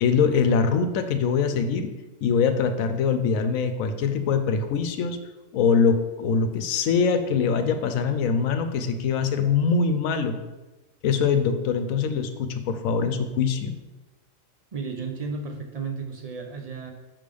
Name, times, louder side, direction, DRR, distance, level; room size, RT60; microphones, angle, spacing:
voice 1, 0.0-1.9 2.2-5.2 5.5-10.4 11.0-13.8, left 5 dB, 85° left, 8 dB, 1.0 m, -23 dB
voice 2, 14.7-16.9, right 4 dB, 45° right, 2 dB, 0.5 m, -33 dB
5.5 x 3.4 x 5.2 m, 1.1 s
omnidirectional pair, 1.4 m